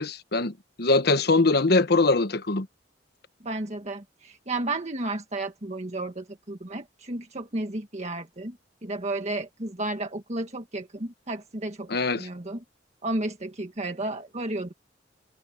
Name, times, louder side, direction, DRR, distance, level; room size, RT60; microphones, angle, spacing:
voice 1, 0.0-2.7 11.9-12.3, left 3 dB, 60° left, 1.1 m, -22 dB
voice 2, 3.4-11.9 12.2-12.6 13.0-14.7, right 2 dB, 35° right, 1.7 m, -32 dB
head